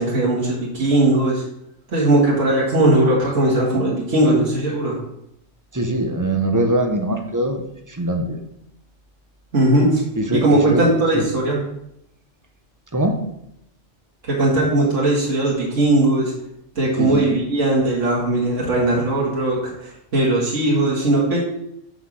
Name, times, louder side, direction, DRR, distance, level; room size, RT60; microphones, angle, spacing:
voice 1, 0.0-1.4 1.9-5.0 9.5-10.0 10.3-11.6 14.3-16.3 16.8-21.4, right 1 dB, 70° right, -5 dB, 2.1 m, -18 dB
voice 2, 5.7-7.6 7.9-8.4 10.1-11.3 12.9-13.2 16.9-17.3, right 1 dB, 20° right, 4 dB, 0.7 m, -22 dB
6.0 x 5.4 x 6.2 m, 0.79 s
omnidirectional pair, 1.3 m